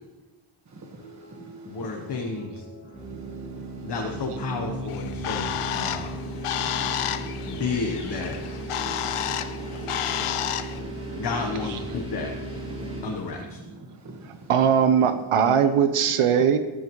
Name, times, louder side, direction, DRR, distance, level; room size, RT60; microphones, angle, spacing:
voice 1, 0.6-2.2 2.8-4.8 5.7-6.3 6.6-11.7 12.2-15.0 16.0-16.1, right 2 dB, 35° right, 0 dB, 1.5 m, -46 dB
sound 1, 1.0-13.3, equal, 25° left, 0.7 m, -46 dB
voice 2, 1.7-2.6 3.8-6.1 7.4-8.4 11.2-12.3 13.0-13.4, left 4 dB, 55° left, 2 dB, 1.1 m, -31 dB
sound 2, 2.9-13.0, right 1 dB, 10° right, 3.2 m, -36 dB
Bird, 4.9-10.8, left 11 dB, 90° left, 0.7 m, -31 dB
voice 3, 11.5-12.0 14.2-16.6, right 7 dB, 85° right, 9 dB, 1.0 m, -21 dB
15.5 x 11.5 x 3.1 m, 1.2 s
wide cardioid pair, 180°, 50 cm